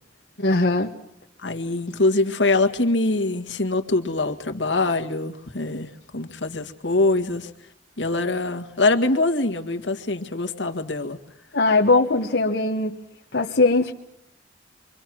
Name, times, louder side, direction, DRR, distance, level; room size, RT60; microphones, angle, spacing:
voice 1, 0.4-0.9 11.5-13.0 13.3-13.9, left 3 dB, 70° left, 1.3 m, -20 dB
voice 2, 1.4-7.5 8.0-11.2, left 2 dB, 85° left, 1.9 m, -23 dB
26.5 x 24.5 x 6.2 m
head